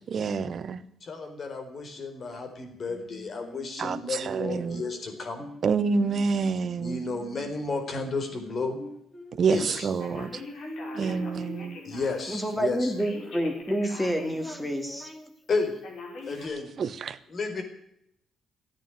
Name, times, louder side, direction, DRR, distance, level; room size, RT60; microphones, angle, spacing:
voice 1, 0.1-0.8 3.8-4.8 5.6-7.0 9.4-10.4 10.9-11.8 16.8-17.2, right 5 dB, 50° right, 12 dB, 1.1 m, -27 dB
voice 2, 1.0-5.5 6.7-8.8 9.5-9.9 11.8-12.9 15.5-15.7 16.3-16.7 17.3-17.6, left 3 dB, 45° left, 5 dB, 4.3 m, -32 dB
Singing, 2.9-7.6 7.9-12.0 12.4-13.6, equal, 25° left, 6.4 m, -44 dB
Telephone, 10.0-12.3 13.0-14.5 14.9-15.0 15.8-16.5, left 3 dB, 70° left, 5.6 m, -42 dB
voice 3, 12.3-15.3, equal, 5° left, 7 dB, 2.7 m, -28 dB
14.5 x 9.1 x 9.3 m, 0.74 s
cardioid pair, 90°, 0 cm